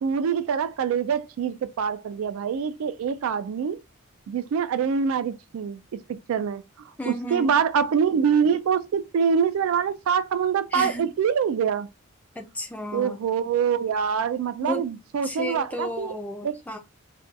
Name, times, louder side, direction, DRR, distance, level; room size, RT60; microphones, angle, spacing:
voice 1, 0.0-3.8 4.3-11.9 12.9-16.1 16.4-16.6, right 7 dB, 70° right, 0.3 m, -25 dB
voice 2, 7.0-7.5 10.7-11.1 12.4-13.2 14.6-14.8 15.2-16.8, left 1 dB, 5° left, 0.4 m, -33 dB
2.5 x 2.2 x 2.4 m
head